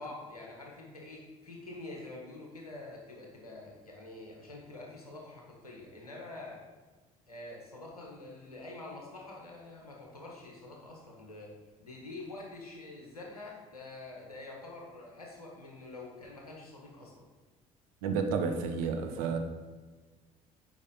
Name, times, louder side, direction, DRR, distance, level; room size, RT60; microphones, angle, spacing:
voice 1, 0.0-6.6 7.3-11.5 11.8-17.3, left 2 dB, 90° left, -1 dB, 1.6 m, -46 dB
voice 2, 18.0-19.4, right 5 dB, 70° right, 6 dB, 1.0 m, -31 dB
8.1 x 5.5 x 5.4 m, 1.3 s
figure-of-eight pair, 55°, 18 cm